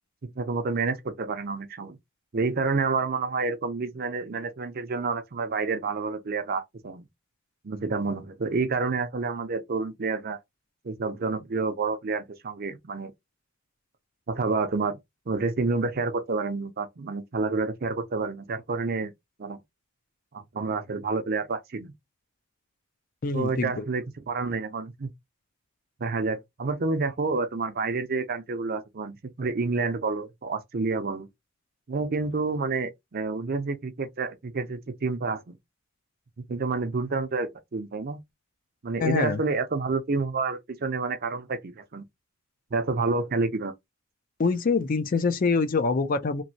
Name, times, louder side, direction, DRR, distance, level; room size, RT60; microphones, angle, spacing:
voice 1, 0.2-2.0 2.3-7.1 7.6-10.4 10.8-13.1 14.3-15.0 15.3-19.1 19.4-19.6 20.3-21.9 23.3-25.1 26.0-31.3 31.9-35.6 36.5-38.2 38.8-42.0 42.7-43.7, right 4 dB, 45° right, 0.5 m, -29 dB
voice 2, 23.2-23.8 39.0-39.4 44.4-46.4, left 4 dB, 40° left, 0.4 m, -25 dB
3.0 x 2.6 x 2.7 m
head